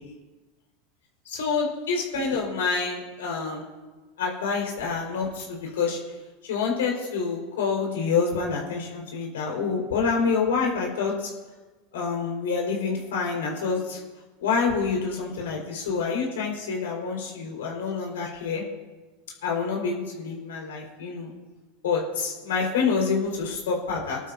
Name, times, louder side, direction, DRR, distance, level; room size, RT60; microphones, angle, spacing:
voice 1, 1.2-3.7 4.2-6.0 6.4-11.3 11.9-14.0 14.4-18.6 19.4-21.3 21.8-24.2, left 5 dB, 85° left, -1 dB, 4.8 m, -27 dB
22.0 x 12.5 x 2.8 m, 1.2 s
hypercardioid pair, 105°, 0 cm